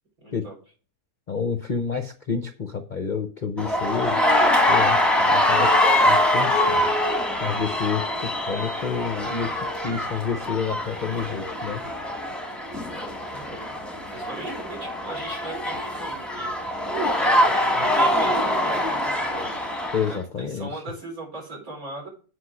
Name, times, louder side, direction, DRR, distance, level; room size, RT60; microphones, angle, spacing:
voice 1, 0.2-0.6 12.9-13.8 14.1-16.5 17.2-19.6 20.1-22.1, right 2 dB, 60° right, -2 dB, 5.3 m, -38 dB
voice 2, 1.3-4.2 4.7-6.9 7.4-11.8 19.9-20.8, left 6 dB, 45° left, 8 dB, 0.6 m, -29 dB
sound 1, 3.6-20.2, left 1 dB, ahead, 1.1 m, -23 dB
8.1 x 5.5 x 6.2 m, 0.39 s
omnidirectional pair, 1.7 m